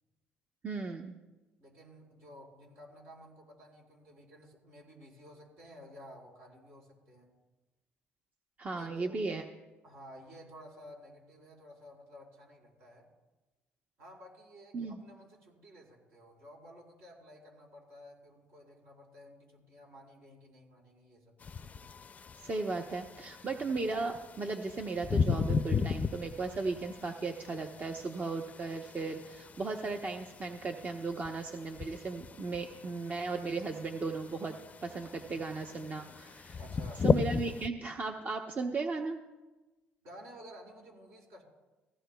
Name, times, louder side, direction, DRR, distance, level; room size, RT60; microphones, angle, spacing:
voice 1, 0.6-1.1 8.6-9.4 14.7-15.0 22.4-36.6 37.0-39.2, right 3 dB, 35° right, 3 dB, 0.9 m, -36 dB
voice 2, 1.6-7.3 8.7-9.2 9.8-13.1 14.0-21.6 23.6-23.7 35.3-35.4 36.6-37.1 40.0-41.4, equal, 70° right, -3 dB, 4.7 m, -53 dB
sound 1, 21.4-37.7, left 5 dB, 35° left, 0.5 m, -36 dB
19.0 x 15.5 x 2.3 m, 1.1 s
supercardioid pair, 75°, 4 cm